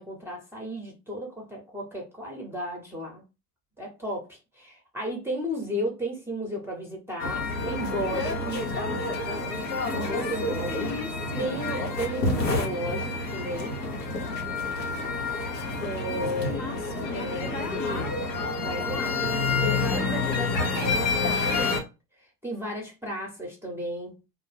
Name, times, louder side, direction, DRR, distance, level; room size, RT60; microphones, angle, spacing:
voice 1, 0.0-3.2 3.8-8.6 9.9-10.8 11.4-13.8 15.8-16.6 17.1-17.5 18.5-21.8 22.4-24.1, equal, 5° right, 0.7 m, -34 dB
sound 1, 7.2-21.8, left 3 dB, 90° left, 0.8 m, -29 dB
voice 2, 9.8-10.2 10.6-11.7 16.1-18.1, left 3 dB, 50° left, 0.9 m, -37 dB
2.1 x 2.0 x 3.2 m
hypercardioid pair, 90°, 48 cm